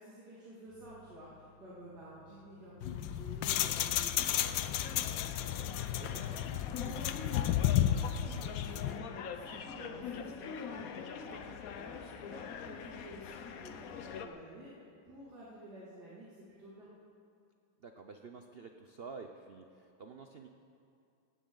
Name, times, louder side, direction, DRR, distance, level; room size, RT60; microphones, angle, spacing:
voice 1, 0.0-11.4 11.7-16.9, right 1 dB, 55° right, -9 dB, 3.2 m, -51 dB
sound 1, 0.7-7.7, left 1 dB, ahead, 2.7 m, -62 dB
sound 2, 2.8-9.0, left 11 dB, 80° left, 1.3 m, -32 dB
sound 3, 4.2-14.3, left 7 dB, 60° left, 1.0 m, -44 dB
voice 2, 6.0-6.3 6.8-6.9 7.3-7.6 11.3-11.6 17.8-20.5, right 4 dB, 80° right, 5 dB, 0.5 m, -50 dB
18.5 x 16.0 x 3.9 m, 2.5 s
omnidirectional pair, 2.1 m